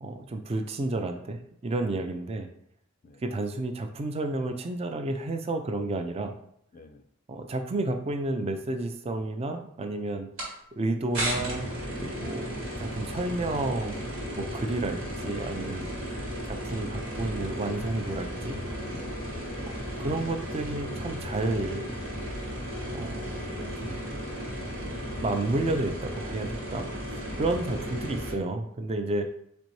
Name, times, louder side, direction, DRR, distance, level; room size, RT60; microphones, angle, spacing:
voice 1, 0.0-2.5 3.2-6.3 7.3-11.7 12.0-12.5 12.8-15.9 16.5-18.6 20.0-21.8 22.9-24.0 25.2-29.3, right 2 dB, 30° right, 6 dB, 0.4 m, -31 dB
voice 2, 6.7-7.0 15.5-16.0 18.8-19.3 23.5-24.3 27.3-27.8, left 2 dB, 40° left, 8 dB, 0.4 m, -48 dB
sound 1, 10.4-10.5 11.1-28.3, equal, 75° right, 1.4 m, -35 dB
4.3 x 4.0 x 3.1 m, 0.70 s
head